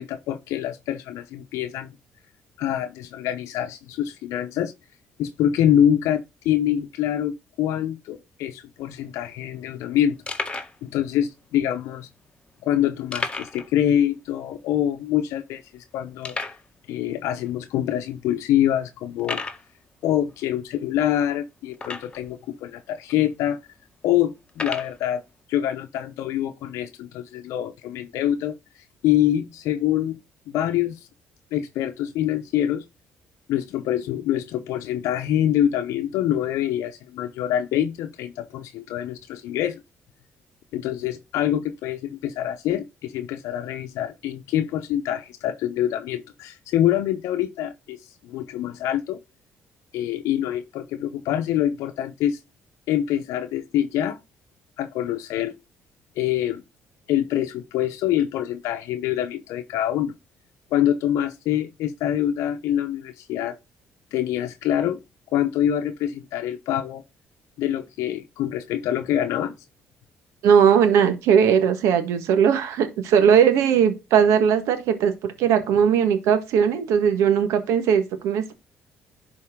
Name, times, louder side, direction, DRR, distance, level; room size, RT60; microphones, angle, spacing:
voice 1, 0.0-1.9 2.6-4.7 5.2-7.3 7.6-10.2 10.5-12.1 12.6-16.4 16.9-19.4 20.0-23.6 24.0-25.2 25.5-28.6 29.0-30.2 30.5-31.0 31.5-32.8 33.5-39.8 40.7-48.0 48.2-49.2 49.9-52.4 52.9-54.2 54.8-55.5 56.2-56.6 57.1-60.1 60.7-63.6 64.1-65.0 65.3-67.0 67.6-69.5, left 11 dB, 80° left, 0.8 m, -25 dB
sound 1, 8.8-8.9 9.1-9.2 9.8-9.9 10.3-10.8 11.5-11.6 13.1-13.7 14.0-14.1 14.5-14.6 15.2-15.3 16.2-16.7 17.5-17.6 18.1-18.3 19.2-19.7 21.7-22.3 23.1-23.2 24.5-25.0, left 3 dB, 20° left, 1.5 m, -32 dB
voice 2, 70.4-78.5, right 7 dB, 80° right, 1.4 m, -19 dB
11.0 x 4.4 x 3.7 m
supercardioid pair, 70°, 5 cm